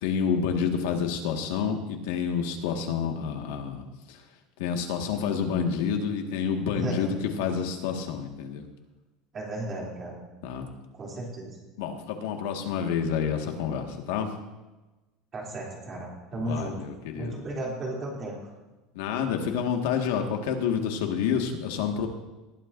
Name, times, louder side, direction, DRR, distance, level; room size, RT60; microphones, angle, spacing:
voice 1, 0.0-4.2 4.6-8.6 10.4-10.7 11.8-14.3 16.4-17.4 18.9-22.1, left 7 dB, 80° left, 3 dB, 1.7 m, -29 dB
voice 2, 6.8-7.1 9.3-10.2 10.9-11.6 15.3-16.8 17.2-18.4, right 2 dB, 25° right, -3 dB, 3.0 m, -34 dB
19.5 x 11.5 x 2.6 m, 1.1 s
cardioid pair, 175°, 0 cm